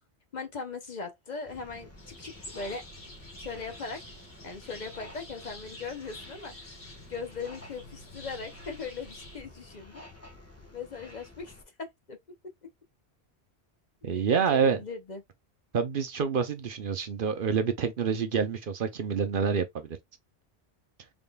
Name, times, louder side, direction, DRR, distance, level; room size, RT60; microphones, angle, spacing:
voice 1, 0.3-2.8 3.4-4.0 4.4-6.5 7.1-10.0 10.7-12.2 14.1-15.2, left 4 dB, 50° left, 0.7 m, -39 dB
sound 1, 1.5-11.6, left 2 dB, 15° left, 1.1 m, -51 dB
sound 2, 2.0-9.4, left 1 dB, 75° left, 2.2 m, -48 dB
voice 2, 14.0-14.8 15.7-20.0, right 6 dB, 60° right, 0.8 m, -27 dB
4.0 x 3.6 x 2.2 m
omnidirectional pair, 1.1 m